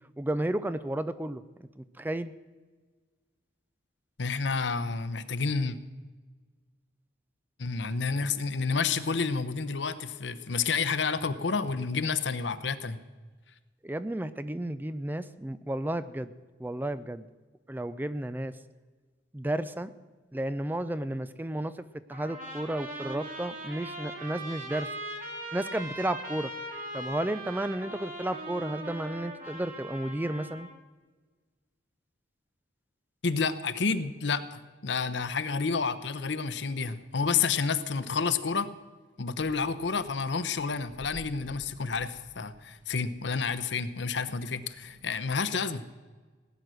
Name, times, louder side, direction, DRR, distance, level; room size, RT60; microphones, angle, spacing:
voice 1, 0.2-1.4 2.0-2.3 13.8-16.3 16.6-17.3 17.7-18.5 19.3-19.9 20.3-21.7 22.1-24.9 25.5-26.5 26.9-30.7, right 1 dB, 10° right, 13 dB, 0.4 m, -32 dB
voice 2, 4.2-5.8 7.6-13.0 33.2-38.7 39.2-45.8, left 5 dB, 70° left, 13 dB, 0.8 m, -30 dB
Trumpet, 22.1-30.8, right 1 dB, 45° right, 2.9 m, -40 dB
sound 1, 39.4-45.4, equal, 90° right, 1.2 m, -54 dB
17.5 x 9.6 x 6.3 m, 1.3 s
head